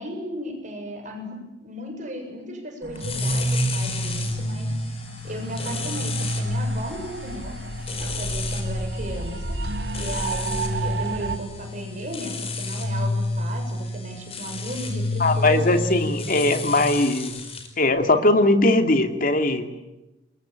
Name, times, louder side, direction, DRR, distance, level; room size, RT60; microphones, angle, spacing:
voice 1, 0.0-4.9 5.2-7.6 8.0-9.6 9.9-15.8, right 1 dB, 45° right, 4 dB, 7.3 m, -35 dB
sound 1, 2.8-11.4, right 3 dB, 65° right, 2.5 m, -34 dB
sound 2, 3.0-17.7, left 1 dB, 35° left, 4.8 m, -29 dB
voice 2, 15.2-17.3 17.8-19.7, left 2 dB, 50° left, 6 dB, 2.6 m, -20 dB
29.0 x 22.5 x 8.9 m, 1.0 s
head